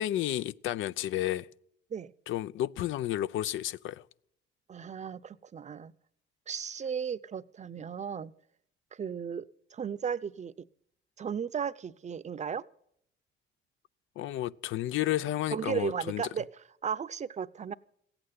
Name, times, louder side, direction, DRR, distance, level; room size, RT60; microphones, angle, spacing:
voice 1, 0.0-1.5 2.3-4.0 14.2-16.3, left 13 dB, 80° left, 0.5 m, -31 dB
voice 2, 4.7-5.9 6.5-8.3 8.9-9.5 9.7-10.5 11.2-12.6 15.5-16.5 16.8-17.7, right 7 dB, 35° right, 0.6 m, -35 dB
15.5 x 8.8 x 9.5 m
cardioid pair, 90°, 20 cm